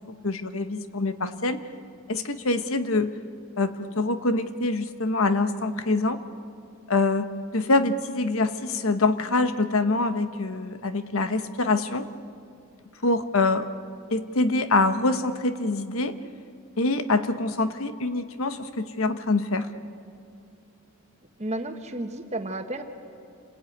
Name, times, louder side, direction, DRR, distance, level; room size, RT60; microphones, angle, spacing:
voice 1, 0.2-1.6 2.1-3.2 3.6-6.2 6.9-12.1 13.0-13.7 14.1-16.1 16.8-19.7, left 2 dB, 75° left, 10 dB, 1.2 m, -25 dB
voice 2, 21.4-22.8, right 1 dB, 30° right, 5 dB, 1.5 m, -32 dB
28.5 x 21.5 x 9.4 m, 2.6 s
head